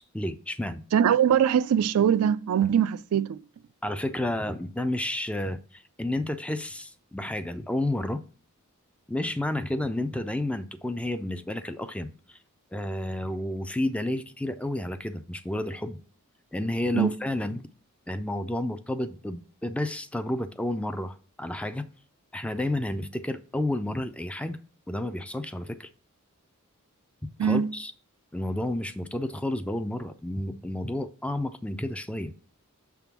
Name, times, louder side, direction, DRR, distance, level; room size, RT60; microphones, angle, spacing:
voice 1, 0.0-0.8 3.8-8.2 9.1-12.4 12.7-16.0 16.5-17.7 18.1-21.9 22.3-24.6 24.9-25.9 27.4-27.9 28.3-32.3, left 1 dB, 5° left, 0.3 m, -31 dB
voice 2, 0.9-3.4 16.9-17.1 27.4-27.7, right 8 dB, 80° right, 0.3 m, -22 dB
6.5 x 3.5 x 5.9 m
head